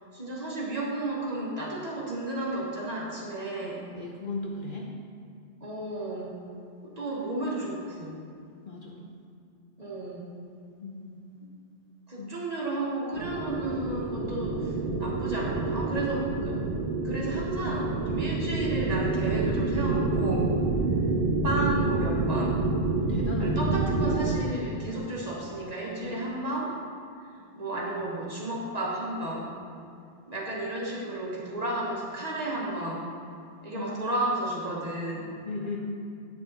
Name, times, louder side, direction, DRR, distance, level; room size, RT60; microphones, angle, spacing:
voice 1, 0.1-3.8 5.6-6.3 6.8-8.1 9.8-10.3 12.1-16.6 17.0-20.6 21.4-22.6 23.4-26.7 27.5-29.5 30.3-33.1 33.6-35.3, right 1 dB, 35° right, -4 dB, 1.4 m, -33 dB
voice 2, 4.0-4.9 8.6-9.1 10.8-11.5 12.2-12.3 23.0-23.6 24.9-25.1 26.0-26.3 33.7-33.9 35.1-35.8, left 3 dB, 50° left, -1 dB, 0.8 m, -37 dB
sound 1, 13.1-24.4, right 3 dB, 85° right, 1.2 m, -28 dB
8.2 x 6.5 x 4.0 m, 2.4 s
omnidirectional pair, 1.2 m